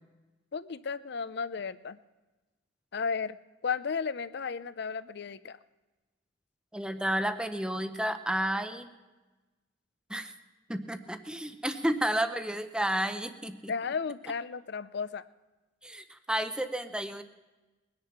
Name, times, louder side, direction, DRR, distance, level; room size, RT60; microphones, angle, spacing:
voice 1, 0.5-2.0 2.9-3.4 3.6-5.6 13.7-15.2, left 5 dB, 60° left, 15 dB, 0.5 m, -34 dB
voice 2, 6.7-8.9 10.1-10.3 10.7-13.7 15.8-17.2, right 1 dB, 5° right, 9 dB, 0.7 m, -31 dB
21.0 x 10.5 x 5.9 m, 1.2 s
head